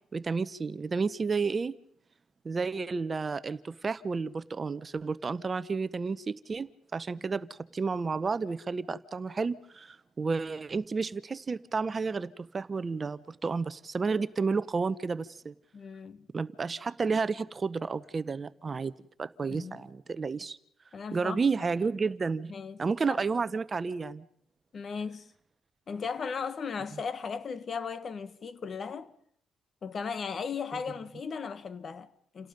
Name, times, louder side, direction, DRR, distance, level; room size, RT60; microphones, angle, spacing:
voice 1, 0.1-1.7 2.4-15.5 16.3-18.9 19.2-20.6 21.1-22.5 22.8-24.2, right 4 dB, 35° right, 0.8 m, -31 dB
voice 2, 15.7-16.3 19.5-19.9 20.9-21.7 22.5-23.2 24.7-25.3 25.9-29.1 29.8-32.5, left 5 dB, 50° left, 1.3 m, -37 dB
29.0 x 17.5 x 5.2 m
cardioid pair, 90°, 0 cm